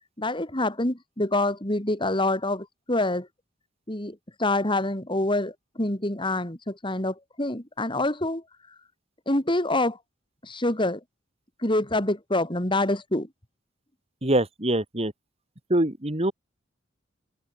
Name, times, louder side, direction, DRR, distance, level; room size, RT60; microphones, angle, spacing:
voice 1, 0.2-3.3 3.9-8.4 9.3-10.0 10.4-11.0 11.6-13.3, left 2 dB, 25° left, 3.6 m, -26 dB
voice 2, 14.2-15.1 15.7-16.3, right 1 dB, 30° right, 2.5 m, -24 dB
head